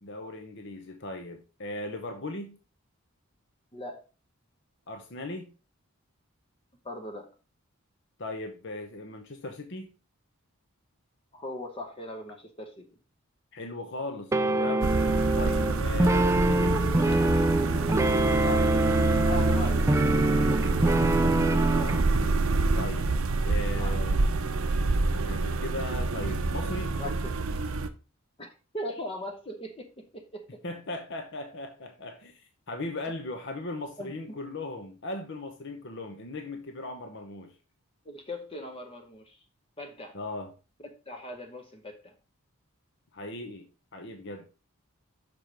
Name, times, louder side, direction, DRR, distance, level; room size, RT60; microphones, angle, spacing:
voice 1, 0.0-2.6 4.9-5.5 8.2-9.9 13.5-15.0 15.3-16.9 21.2-23.1 23.4-24.2 25.1-27.0 30.6-37.5 40.1-40.5 43.1-43.7 43.9-44.4, left 2 dB, 50° left, 0.9 m, -38 dB
voice 2, 3.7-4.0 6.8-7.3 11.3-12.9 18.4-19.9 23.8-24.2 26.9-27.3 28.4-28.5 28.7-30.6 34.0-34.4 38.0-39.4 39.8-40.2 40.8-42.1, left 1 dB, 25° left, 0.8 m, -39 dB
sound 1, 14.3-22.0, right 2 dB, 15° right, 0.3 m, -25 dB
sound 2, 14.8-27.9, right 3 dB, 65° right, 0.6 m, -27 dB
6.1 x 4.9 x 5.0 m
head